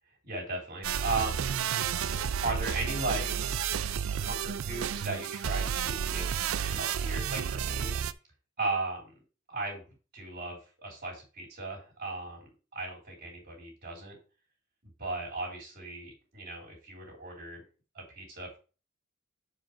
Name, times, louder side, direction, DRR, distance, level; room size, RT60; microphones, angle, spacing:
voice 1, 0.2-1.4 2.4-3.5 4.2-8.0 8.6-9.1 9.5-9.8 10.1-14.2 14.8-17.6 17.9-18.6, right 2 dB, 50° right, -2 dB, 3.2 m, -36 dB
sound 1, 0.8-8.1, right 8 dB, 80° right, 0.4 m, -31 dB
7.5 x 4.9 x 4.4 m, 0.35 s
head